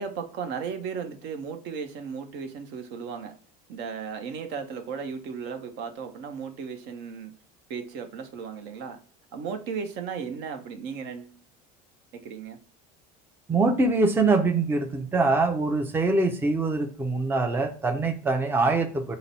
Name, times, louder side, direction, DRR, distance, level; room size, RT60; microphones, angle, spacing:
voice 1, 0.0-3.3 3.7-7.3 7.7-9.0 9.3-11.3 12.1-12.6, right 6 dB, 60° right, 0.7 m, -35 dB
voice 2, 13.5-19.2, right 3 dB, 10° right, 0.5 m, -24 dB
3.8 x 2.0 x 4.0 m
supercardioid pair, 105°, 20 cm